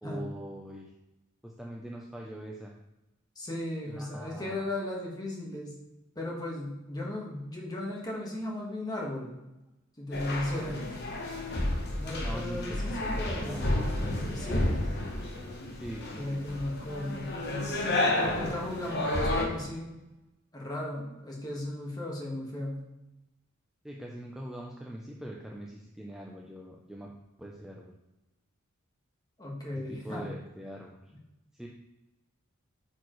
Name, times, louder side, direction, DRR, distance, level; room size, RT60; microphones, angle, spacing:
voice 1, 0.0-0.9 1.4-2.8 3.8-4.7 12.2-13.9 14.2-15.1 15.7-16.4 18.3-18.8 23.8-27.1 27.4-28.0 29.9-31.1 31.5-31.7, right 1 dB, ahead, -2 dB, 0.5 m, -43 dB
voice 2, 3.3-5.7 6.1-9.3 10.0-10.8 11.5-13.6 14.3-14.6 16.1-17.3 18.2-20.0 20.5-22.8 29.4-30.3, left 1 dB, 20° left, -2 dB, 1.4 m, -36 dB
sound 1, 10.1-19.4, left 1 dB, 50° left, 1.1 m, -31 dB
8.3 x 4.5 x 3.1 m, 0.96 s
head